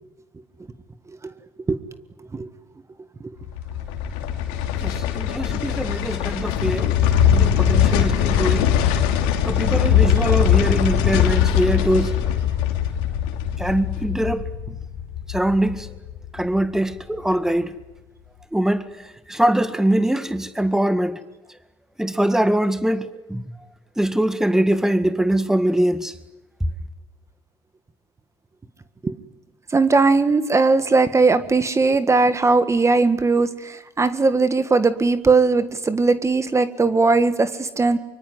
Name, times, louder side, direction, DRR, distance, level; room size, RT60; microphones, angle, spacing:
sound 1, 3.4-16.6 16.9-17.0, left 9 dB, 90° left, 3.0 m, -21 dB
voice 1, 4.8-6.9 7.3-8.7 9.5-12.2 13.6-14.5 15.3-15.9 16.3-17.7 18.5-18.9 19.3-21.2 22.0-23.4 24.0-26.1, right 1 dB, 5° right, 1.9 m, -22 dB
voice 2, 29.7-38.0, right 3 dB, 25° right, 1.8 m, -19 dB
24.5 x 24.0 x 9.6 m
supercardioid pair, 75°, 11 cm